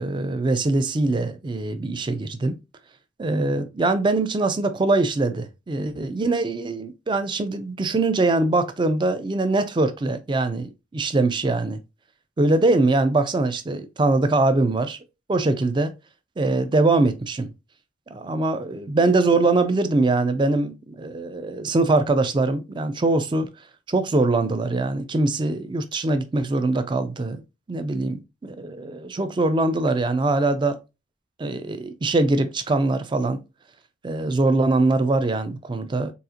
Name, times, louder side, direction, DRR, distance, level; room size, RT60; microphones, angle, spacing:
voice 1, 0.0-2.6 3.2-11.8 12.4-15.0 15.3-15.9 16.4-17.5 18.1-23.5 23.9-27.4 27.7-30.8 31.4-33.4 34.0-36.1, right 2 dB, 25° right, 0.3 m, -22 dB
4.0 x 2.4 x 2.4 m
head